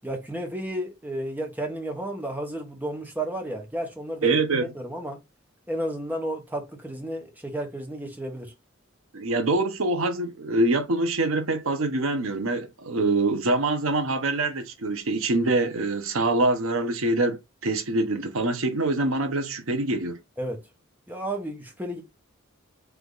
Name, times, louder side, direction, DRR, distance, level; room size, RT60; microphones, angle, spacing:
voice 1, 0.0-4.3 4.7-5.2 5.7-8.5 20.4-20.6 21.1-22.0, right 1 dB, 10° right, 1.0 m, -32 dB
voice 2, 4.2-4.7 9.1-20.2, right 2 dB, 80° right, 0.8 m, -25 dB
3.4 x 3.4 x 3.8 m
head